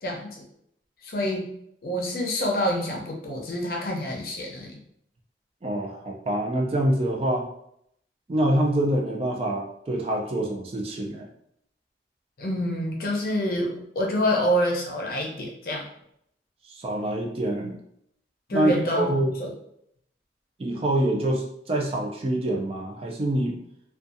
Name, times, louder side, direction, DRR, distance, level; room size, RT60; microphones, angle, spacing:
voice 1, 0.0-0.4 1.0-1.5 1.8-4.8 12.4-15.9 18.5-19.1 19.4-19.5, equal, 55° left, 0 dB, 0.6 m, -27 dB
voice 2, 5.6-7.5 8.3-11.2 16.7-17.8 18.5-19.3 20.6-23.6, right 1 dB, 35° right, 0 dB, 0.4 m, -25 dB
2.5 x 2.3 x 2.6 m, 0.73 s
head